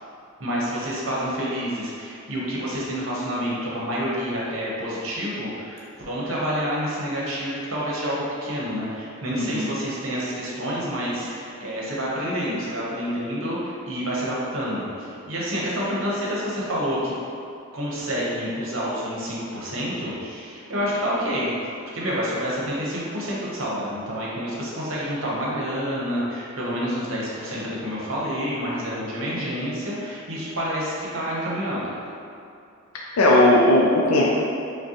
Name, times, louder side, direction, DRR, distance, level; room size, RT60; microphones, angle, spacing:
voice 1, 0.4-17.1 17.7-21.5 21.9-31.9, equal, 65° right, -6 dB, 0.9 m, -28 dB
voice 2, 33.2-34.3, left 1 dB, 85° left, -3 dB, 0.4 m, -17 dB
5.1 x 2.2 x 2.9 m, 2.5 s
head